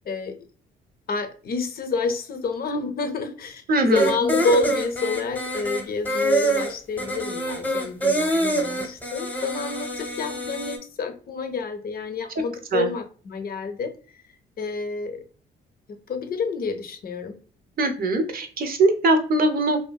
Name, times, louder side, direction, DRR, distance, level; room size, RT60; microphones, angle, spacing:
voice 1, 0.1-0.4 1.1-14.2 14.6-15.2 15.9-17.4, left 3 dB, 50° left, 8 dB, 0.6 m, -29 dB
voice 2, 3.7-4.1 12.7-12.9 17.8-19.8, right 2 dB, 50° right, 6 dB, 0.6 m, -21 dB
sound 1, 4.0-10.8, right 1 dB, 10° left, 0.8 m, -25 dB
2.6 x 2.5 x 2.2 m, 0.41 s
cardioid pair, 90°, 20 cm